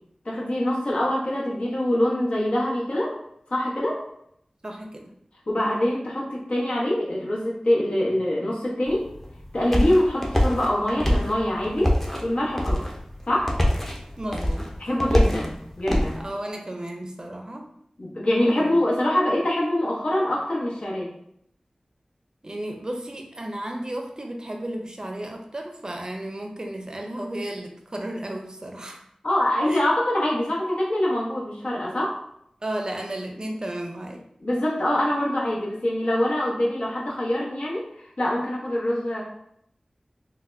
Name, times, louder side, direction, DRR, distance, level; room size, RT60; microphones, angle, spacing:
voice 1, 0.2-3.2 3.5-4.0 5.5-9.1 9.5-12.8 13.3-13.5 14.8-16.2 18.0-21.1 29.2-32.1 34.4-39.2, left 1 dB, 75° left, -5 dB, 1.0 m, -24 dB
voice 2, 4.6-5.1 14.2-14.7 15.1-15.4 16.1-17.7 18.5-18.8 22.4-29.0 29.7-29.8 32.6-34.2, right 1 dB, 35° right, 2 dB, 0.5 m, -33 dB
sound 1, 8.9-16.2, equal, 15° left, 0.6 m, -25 dB
4.0 x 2.2 x 2.5 m, 0.73 s
wide cardioid pair, 65°, 2 cm